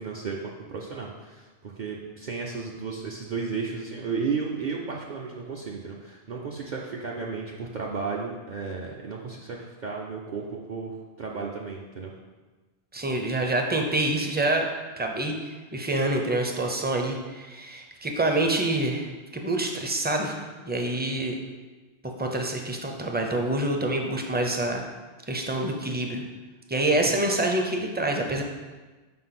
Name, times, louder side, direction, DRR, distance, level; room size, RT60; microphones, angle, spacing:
voice 1, 0.0-12.1 26.9-27.2, right 5 dB, 55° right, -2 dB, 0.7 m, -34 dB
voice 2, 12.9-14.7 15.0-21.4 22.0-24.8 25.3-26.2 26.7-28.4, right 2 dB, 15° right, 2 dB, 0.4 m, -27 dB
5.1 x 3.8 x 5.8 m, 1.3 s
omnidirectional pair, 1.0 m